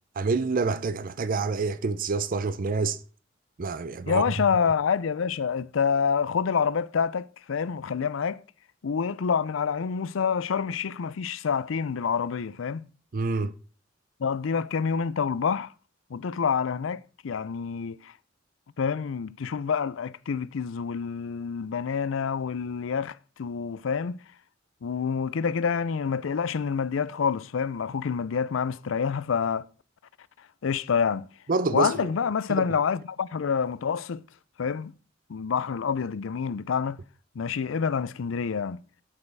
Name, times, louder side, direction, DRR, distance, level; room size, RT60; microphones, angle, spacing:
voice 1, 0.2-3.0 3.6-4.2 13.1-13.5 31.5-32.1 32.5-32.7, right 4 dB, 45° right, 0.5 m, -27 dB
voice 2, 4.1-8.4 8.8-12.9 14.2-15.7 16.1-18.1 18.8-24.2 24.8-29.6 30.6-31.3 31.7-34.2 34.6-34.9 35.3-37.0 37.4-38.8, left 6 dB, 80° left, 0.5 m, -27 dB
12.0 x 5.4 x 4.7 m
head